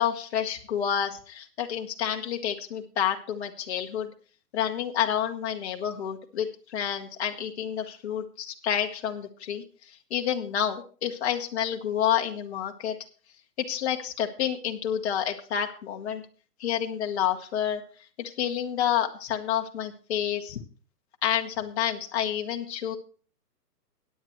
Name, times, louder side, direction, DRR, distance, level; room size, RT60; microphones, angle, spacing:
voice 1, 0.0-4.1 4.5-12.9 13.7-16.2 16.6-17.8 18.2-20.6 21.2-23.0, left 9 dB, 40° left, 2 dB, 1.3 m, -29 dB
16.5 x 9.4 x 3.1 m, 0.40 s
hypercardioid pair, 160°, 49 cm